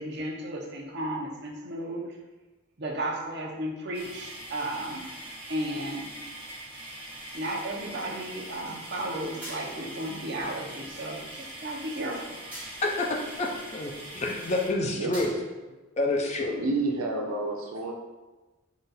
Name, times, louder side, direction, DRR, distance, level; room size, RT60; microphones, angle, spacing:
voice 1, 0.0-2.0 2.8-5.0 5.5-6.0 7.3-12.4, right 1 dB, 55° right, -1 dB, 0.7 m, -34 dB
sound 1, 3.9-14.7, right 1 dB, 25° right, 1.2 m, -42 dB
sound 2, 9.4-10.0 12.5-13.1 15.1-15.7, right 1 dB, 5° right, 1.2 m, -43 dB
voice 2, 12.8-15.3 16.0-16.6, left 2 dB, 30° left, 1 dB, 0.4 m, -28 dB
voice 3, 16.5-17.9, right 2 dB, 90° right, 1 dB, 0.6 m, -29 dB
3.9 x 2.3 x 3.9 m, 1.2 s
head